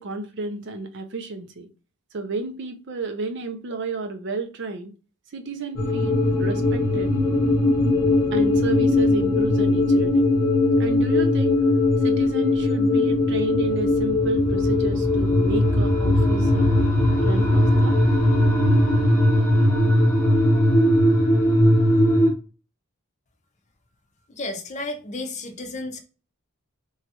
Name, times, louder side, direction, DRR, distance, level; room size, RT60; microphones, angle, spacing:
voice 1, 0.0-1.7 2.1-4.9 5.3-7.1 8.3-10.3 10.8-11.6 12.0-16.8 17.2-18.0, right 3 dB, 55° right, 0.5 m, -31 dB
sound 1, 5.8-22.3, left 1 dB, 10° left, 1.0 m, -19 dB
voice 2, 24.3-26.0, left 2 dB, 35° left, 0.5 m, -32 dB
3.0 x 2.3 x 2.8 m
head